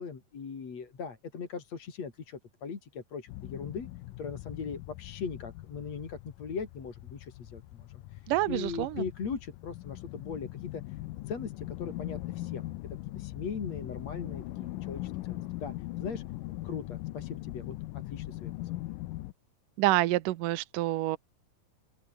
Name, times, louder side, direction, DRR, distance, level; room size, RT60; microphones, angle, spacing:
voice 1, 0.0-3.9 4.2-10.8 11.3-16.2 16.6-18.7, left 5 dB, 50° left, 4.5 m, -40 dB
sound 1, 3.3-19.3, left 17 dB, 80° left, 2.4 m, -40 dB
voice 2, 8.3-9.0 19.8-21.2, right 17 dB, 80° right, 2.4 m, -27 dB
open air
omnidirectional pair, 3.8 m